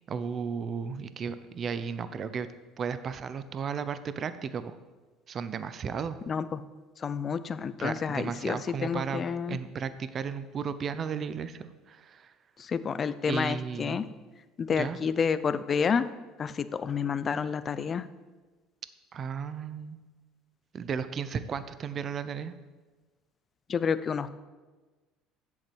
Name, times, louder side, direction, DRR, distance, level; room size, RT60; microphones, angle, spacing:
voice 1, 0.1-2.5 2.8-4.8 5.3-6.2 7.8-9.2 9.5-12.3 13.3-14.0 14.7-15.0 19.1-20.0 20.7-22.5, right 6 dB, 40° right, 13 dB, 0.6 m, -34 dB
voice 2, 6.3-6.6 7.0-9.6 12.7-14.0 14.6-16.0 16.4-18.0 23.7-24.3, left 6 dB, 35° left, 14 dB, 0.6 m, -29 dB
8.1 x 7.2 x 7.9 m, 1.3 s
cardioid pair, 110°, 0 cm